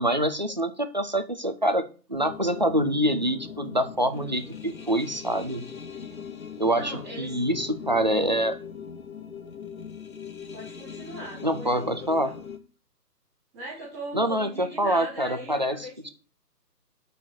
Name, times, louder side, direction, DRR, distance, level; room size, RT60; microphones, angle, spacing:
voice 1, 0.0-1.8 2.1-5.7 6.6-8.5 11.4-12.3 14.1-16.1, right 1 dB, 30° right, 9 dB, 0.5 m, -26 dB
sound 1, 2.1-12.6, left 6 dB, 55° left, 1.3 m, -40 dB
voice 2, 4.1-4.7 6.7-7.4 10.5-12.4 13.5-16.1, right 1 dB, 15° right, -6 dB, 3.3 m, -40 dB
7.3 x 5.9 x 6.6 m, 0.37 s
figure-of-eight pair, 150°, 49 cm